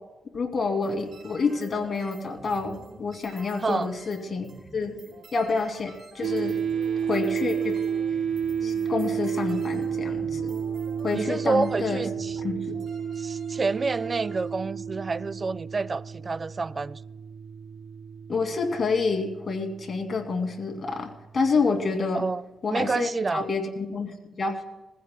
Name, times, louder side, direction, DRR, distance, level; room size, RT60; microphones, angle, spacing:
voice 1, 0.3-4.5 4.7-4.9 5.3-6.6 7.0-7.8 8.6-10.6 11.0-12.0 12.4-12.8 18.3-22.2 22.6-24.6, left 4 dB, 45° left, 2.6 m, -28 dB
sound 1, 0.8-14.4, right 3 dB, 65° right, 5.7 m, -48 dB
sound 2, 6.2-21.4, right 7 dB, 85° right, 1.0 m, -31 dB
voice 2, 11.1-12.4 13.2-17.0 22.1-22.4 22.7-23.5, right 4 dB, 40° right, 0.4 m, -28 dB
21.0 x 15.5 x 2.3 m
cardioid pair, 70°, 0 cm